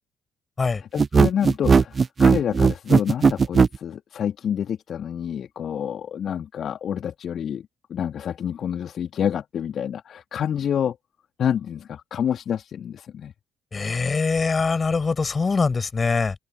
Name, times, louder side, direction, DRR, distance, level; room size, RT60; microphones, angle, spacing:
voice 1, 0.7-11.0 11.4-13.3, left 8 dB, 50° left, 2.4 m, -28 dB
sound 1, 1.0-3.8, right 5 dB, 35° right, 0.5 m, -16 dB
voice 2, 13.7-16.3, left 4 dB, 30° left, 5.9 m, -23 dB
figure-of-eight pair, 45°, 0 cm